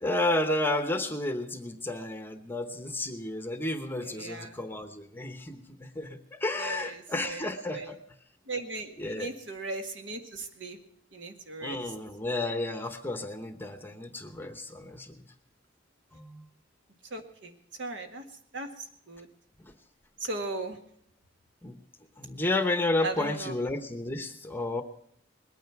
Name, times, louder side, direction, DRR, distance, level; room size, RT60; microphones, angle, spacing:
voice 1, 0.0-8.0 9.0-9.3 11.6-15.1 16.1-16.5 21.6-21.8 22.2-24.8, left 2 dB, 10° left, 8 dB, 0.9 m, -32 dB
voice 2, 4.0-4.6 6.6-7.5 7.7-7.9 8.5-10.8 11.1-11.8 17.1-17.5 17.8-18.2 18.5-19.3 20.2-20.8 23.0-23.5, right 2 dB, 65° right, 6 dB, 1.8 m, -37 dB
20.0 x 9.3 x 5.8 m, 0.67 s
head